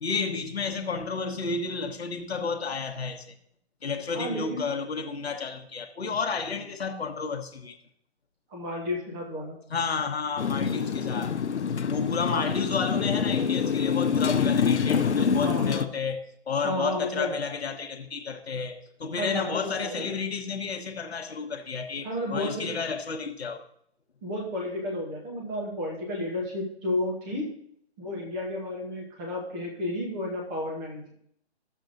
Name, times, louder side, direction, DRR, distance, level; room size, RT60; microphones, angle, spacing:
voice 1, 0.0-3.3 3.8-7.8 9.7-11.4 11.9-23.6, left 5 dB, 65° left, 1.2 m, -31 dB
voice 2, 4.1-4.6 8.5-9.6 12.2-12.4 15.4-15.9 16.6-17.3 19.2-19.4 19.8-20.1 22.0-22.7 24.2-27.5 28.0-31.1, left 1 dB, 10° right, 0.8 m, -32 dB
Motorcycle, 10.4-15.9, left 6 dB, 85° left, 0.7 m, -26 dB
14.5 x 7.0 x 2.6 m
hypercardioid pair, 160°, 33 cm